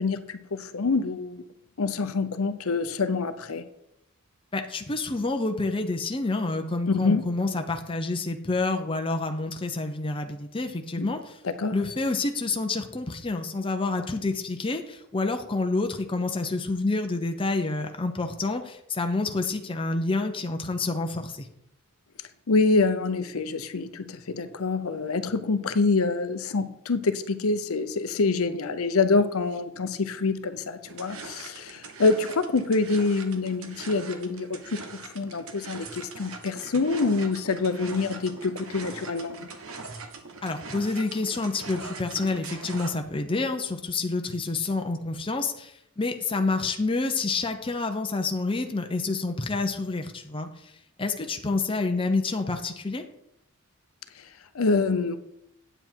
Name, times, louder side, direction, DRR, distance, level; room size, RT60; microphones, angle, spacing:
voice 1, 0.0-1.4 1.8-3.6 6.9-7.2 11.0-11.1 11.4-11.7 22.5-39.5 54.2-54.3 54.5-55.2, left 3 dB, 65° left, 10 dB, 0.7 m, -26 dB
voice 2, 4.5-11.4 11.7-21.5 40.4-50.5 51.0-53.0, left 3 dB, 25° left, 5 dB, 0.7 m, -28 dB
sound 1, 30.8-42.9, right 4 dB, 65° right, 1.1 m, -42 dB
8.9 x 7.8 x 4.5 m, 0.77 s
head